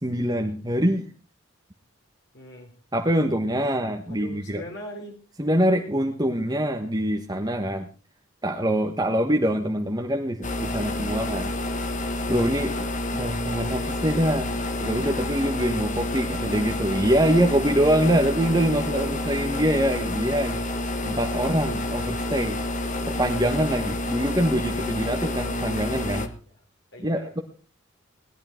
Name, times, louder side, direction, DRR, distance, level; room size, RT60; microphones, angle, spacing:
voice 1, 0.0-1.1 2.9-4.6 5.4-7.9 8.4-11.5 12.3-12.8 13.1-20.6 21.0-22.6 23.2-26.3 27.0-27.4, equal, 20° right, 2 dB, 1.4 m, -24 dB
voice 2, 2.3-2.7 3.5-3.6 4.1-5.1 18.7-19.2 26.9-27.3, left 1 dB, 55° left, 1 dB, 3.6 m, -40 dB
sound 1, 10.4-26.3, left 1 dB, 40° left, 1.8 m, -29 dB
20.0 x 12.0 x 4.5 m, 0.38 s
head